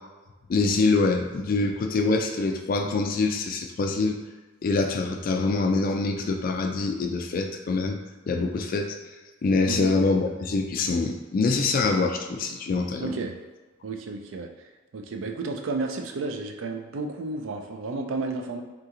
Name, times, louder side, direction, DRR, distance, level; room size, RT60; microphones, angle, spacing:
voice 1, 0.5-4.2 4.6-8.0 8.3-8.9 9.4-13.2, left 3 dB, 45° left, 3 dB, 0.3 m, -25 dB
voice 2, 13.0-13.4 13.8-14.5 14.9-18.6, right 3 dB, 70° right, 4 dB, 0.4 m, -32 dB
2.8 x 2.4 x 3.7 m, 1.3 s
head